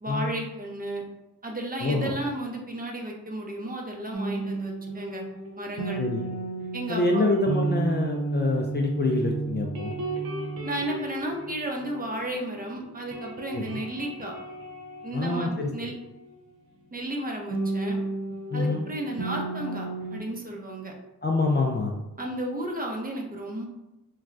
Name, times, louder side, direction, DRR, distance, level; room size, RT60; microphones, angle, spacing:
voice 1, 0.0-1.0 1.4-5.2 5.6-6.0 6.7-7.4 10.6-14.4 15.0-16.0 16.9-18.0 18.5-20.9 22.2-23.6, right 1 dB, 25° right, 0 dB, 0.7 m, -33 dB
voice 2, 1.8-2.1 6.0-6.2 6.9-9.9 13.5-13.8 15.1-15.7 18.5-18.8 21.2-21.9, left 2 dB, 30° left, 1 dB, 0.4 m, -26 dB
sound 1, 4.1-12.6 12.9-16.3 17.5-20.2, right 3 dB, 85° right, 0.7 m, -33 dB
3.1 x 2.2 x 2.5 m, 0.94 s
cardioid pair, 55°, 35 cm